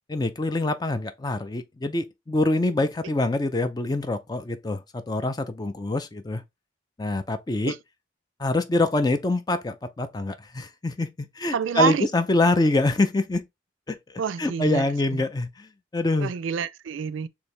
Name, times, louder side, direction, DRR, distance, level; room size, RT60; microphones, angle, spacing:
voice 1, 0.1-6.4 7.0-7.7 8.4-13.5 13.9-14.0 14.4-16.3, left 2 dB, 20° left, 0.4 m, -25 dB
voice 2, 11.5-12.1 14.2-14.9 15.1-15.3 16.2-17.3, right 6 dB, 80° right, 0.4 m, -27 dB
4.4 x 2.8 x 3.2 m
head